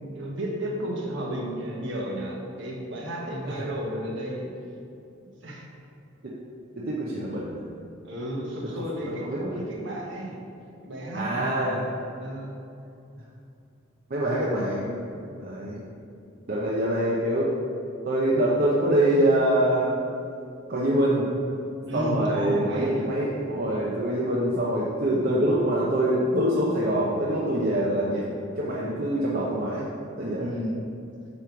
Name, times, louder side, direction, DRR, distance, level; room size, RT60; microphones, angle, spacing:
voice 1, 0.0-4.5 5.4-5.7 8.0-10.4 10.8-11.9 12.2-12.6 21.9-23.1 30.4-30.8, equal, 60° right, -2 dB, 1.3 m, -32 dB
voice 2, 6.7-7.6 8.7-8.8 9.2-9.6 11.1-11.8 14.1-15.0 15.4-15.8 16.5-17.5 18.0-20.0 20.7-21.3 21.9-28.3 28.6-29.9 30.2-30.5, right 1 dB, 45° right, -5 dB, 0.8 m, -25 dB
8.6 x 3.1 x 5.9 m, 2.6 s
head